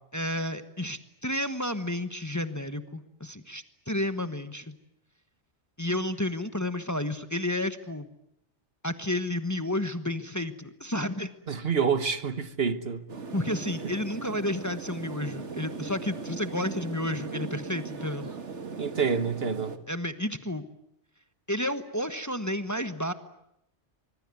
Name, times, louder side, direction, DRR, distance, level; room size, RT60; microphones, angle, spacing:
voice 1, 0.1-4.8 5.8-8.1 8.8-11.3 13.3-18.3 19.9-20.6 21.5-23.1, left 1 dB, 15° left, 1.2 m, -31 dB
voice 2, 11.5-13.0 18.8-19.8, right 6 dB, 60° right, 1.5 m, -27 dB
sound 1, 13.1-19.8, right 4 dB, 85° right, 2.0 m, -38 dB
24.5 x 23.0 x 9.6 m
omnidirectional pair, 1.2 m